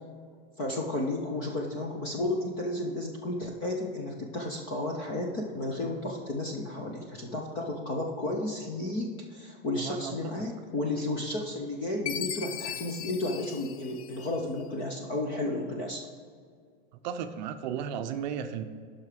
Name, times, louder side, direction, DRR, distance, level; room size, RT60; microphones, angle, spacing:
voice 1, 0.6-16.0, left 2 dB, 15° left, 0 dB, 0.3 m, -32 dB
voice 2, 9.8-10.3 17.0-18.6, right 8 dB, 45° right, 8 dB, 0.6 m, -34 dB
Chime, 12.1-14.6, left 10 dB, 85° left, 0.7 m, -38 dB
10.5 x 5.7 x 4.8 m, 2.1 s
supercardioid pair, 175°, 32 cm